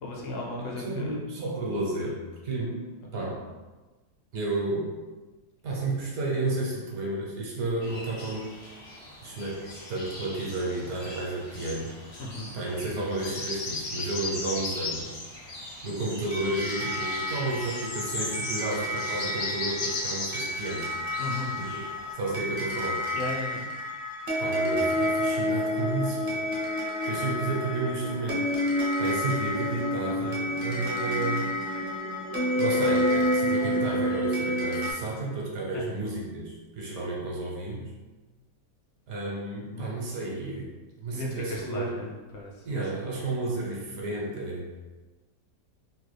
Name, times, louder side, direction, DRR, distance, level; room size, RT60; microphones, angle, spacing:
voice 1, 0.0-1.2 3.2-3.3 12.2-12.5 21.2-21.6 23.1-23.7 35.7-36.0 39.7-39.9 41.1-43.2, left 2 dB, 75° left, -2 dB, 1.2 m, -36 dB
voice 2, 0.6-2.8 3.1-3.4 4.3-4.9 5.6-8.5 9.2-12.2 12.5-15.2 15.8-20.9 21.5-21.8 22.1-23.0 24.4-26.4 27.0-28.5 29.0-31.5 32.5-37.9 39.1-40.7 41.0-42.0 42.6-44.7, right 2 dB, 70° right, -3 dB, 1.1 m, -32 dB
sound 1, 7.8-22.1, left 2 dB, 60° left, 0.7 m, -37 dB
sound 2, 16.3-34.9, left 1 dB, 55° right, 0.7 m, -29 dB
3.1 x 2.2 x 3.2 m, 1.2 s
omnidirectional pair, 1.8 m